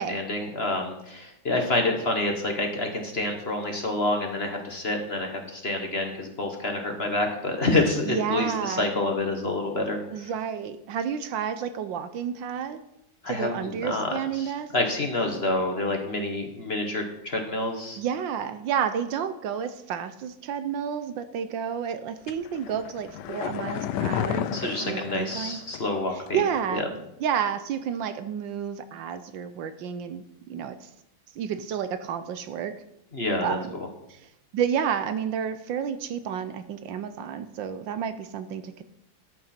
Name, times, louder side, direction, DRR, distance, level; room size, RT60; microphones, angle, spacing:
voice 1, 0.0-10.3 13.2-18.0 24.5-26.4 26.7-26.8 33.1-33.6, left 2 dB, 35° left, 3 dB, 1.4 m, -28 dB
voice 2, 8.0-8.9 10.1-12.8 13.3-14.7 18.0-25.6 26.1-26.9 27.2-30.9 31.4-32.7 33.4-33.7 34.1-38.8, right 8 dB, 75° right, 11 dB, 1.3 m, -30 dB
sound 1, 22.3-26.0 26.3-26.4, left 10 dB, 70° left, 1.1 m, -32 dB
13.5 x 8.8 x 4.4 m, 0.82 s
omnidirectional pair, 2.2 m